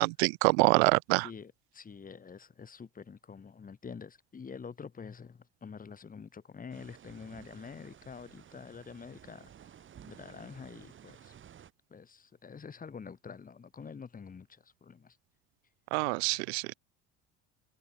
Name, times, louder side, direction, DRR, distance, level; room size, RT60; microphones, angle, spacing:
voice 1, 0.0-1.3 15.9-16.7, right 31 dB, 85° right, 0.9 m, -26 dB
voice 2, 1.2-9.5 10.0-11.3 11.9-15.2, left 6 dB, 25° left, 5.4 m, -47 dB
sound 1, 6.7-11.7, right 9 dB, 40° right, 4.0 m, -54 dB
supercardioid pair, 110°, 32 cm